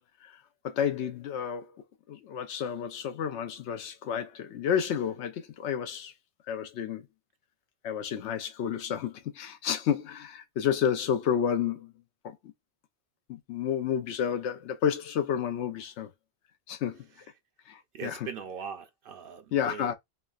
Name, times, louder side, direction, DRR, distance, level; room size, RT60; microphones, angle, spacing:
voice 1, 0.6-6.1 6.5-7.0 7.8-11.9 12.2-12.3 13.3-16.1 16.7-17.1 17.7-18.2 19.5-19.9, left 8 dB, 85° left, 0.9 m, -30 dB
voice 2, 17.9-19.9, right 6 dB, 60° right, 0.7 m, -40 dB
3.3 x 2.1 x 2.3 m
omnidirectional pair, 1.1 m